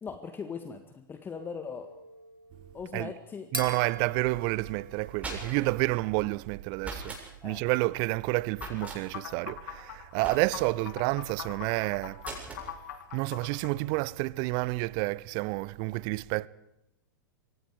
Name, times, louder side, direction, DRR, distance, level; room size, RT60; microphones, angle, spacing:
voice 1, 0.0-1.9 2.7-3.5 7.4-7.7, left 6 dB, 20° left, 1.9 m, -39 dB
sound 1, 1.3-6.2, right 1 dB, 90° right, 4.1 m, -44 dB
voice 2, 3.5-7.2 7.4-12.2 13.1-16.5, right 22 dB, 40° right, 0.9 m, -29 dB
sound 2, 4.9-5.8 6.8-7.3 8.6-9.0 10.2-10.8 12.2-12.7, right 3 dB, 15° right, 7.2 m, -40 dB
sound 3, 8.6-13.7, left 10 dB, 60° left, 3.0 m, -42 dB
27.5 x 24.5 x 5.0 m
figure-of-eight pair, 95°, 11 cm